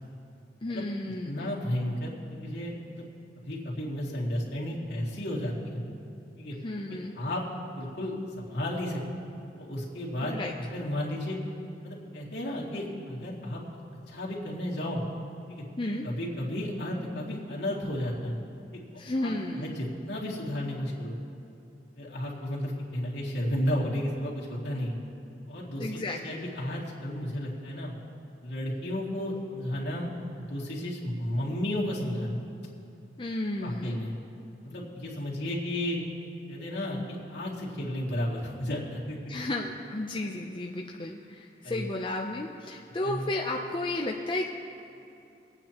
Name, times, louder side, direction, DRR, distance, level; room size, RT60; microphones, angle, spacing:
voice 1, 0.6-1.5 6.6-7.1 10.2-10.5 15.8-16.1 19.0-19.9 25.8-26.5 33.2-34.1 39.3-44.5, left 2 dB, 25° left, 0 dB, 0.5 m, -33 dB
voice 2, 1.2-3.0 3.4-5.8 6.4-6.6 6.9-7.4 7.8-9.2 9.6-10.4 10.7-11.4 11.8-13.6 14.1-15.0 15.5-15.6 16.0-18.4 18.7-18.8 19.2-21.2 22.0-25.0 25.5-27.9 28.4-32.4 33.6-34.1 34.6-36.0 36.5-39.2 41.6-41.9 43.0-43.2, left 1 dB, 70° left, -5 dB, 2.4 m, -33 dB
24.0 x 9.0 x 2.9 m, 2.7 s
head